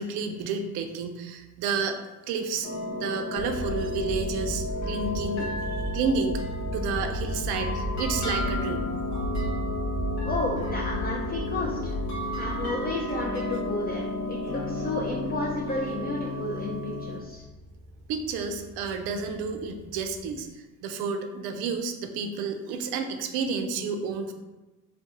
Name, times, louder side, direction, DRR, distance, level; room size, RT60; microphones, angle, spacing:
voice 1, 0.0-2.0 2.3-6.4 6.7-9.3 18.1-24.3, right 5 dB, 60° right, 5 dB, 0.5 m, -31 dB
sound 1, 2.6-17.2, left 2 dB, 80° left, 0.9 m, -33 dB
sound 2, 3.4-20.4, equal, 50° left, 0.9 m, -35 dB
voice 2, 10.2-11.9 12.4-14.0 14.3-17.4, left 2 dB, 25° left, -2 dB, 0.3 m, -32 dB
2.3 x 2.2 x 2.8 m, 1.1 s
hypercardioid pair, 55°, 45 cm